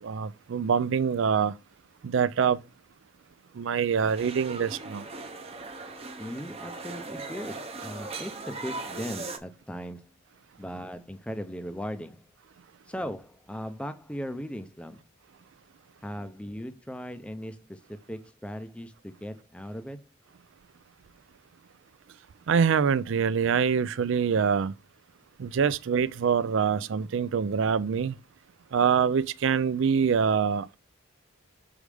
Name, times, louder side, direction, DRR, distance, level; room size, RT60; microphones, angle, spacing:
voice 1, 0.0-1.6 2.0-2.6 3.5-5.1 22.5-24.7 25.4-28.2 28.7-30.8, right 6 dB, 60° right, 0.4 m, -25 dB
sound 1, 4.0-9.4, right 3 dB, 30° right, 0.7 m, -39 dB
voice 2, 6.2-10.2 10.6-12.3 12.9-15.0 16.0-20.0, equal, 5° left, 0.5 m, -38 dB
6.3 x 4.9 x 3.4 m
head